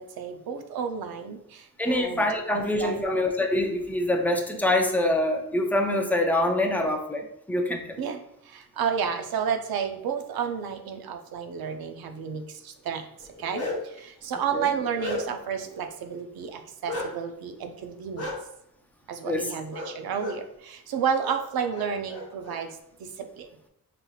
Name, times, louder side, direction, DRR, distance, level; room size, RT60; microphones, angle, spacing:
voice 1, 0.0-3.2 8.0-8.2 8.5-13.0 13.4-13.7 14.0-18.3 19.1-22.7 23.4-23.5, right 7 dB, 85° right, 6 dB, 0.6 m, -31 dB
voice 2, 1.8-8.0 14.5-14.7 19.2-19.5, left 1 dB, 5° left, 3 dB, 0.4 m, -25 dB
Bark, 13.2-14.0 14.5-15.5 16.9-17.1 18.2-18.3 19.7-19.9 20.2-20.4 21.2-21.4 21.7-22.6, left 2 dB, 45° left, 0.9 m, -34 dB
5.1 x 2.9 x 2.3 m, 0.79 s
wide cardioid pair, 145°, 35 cm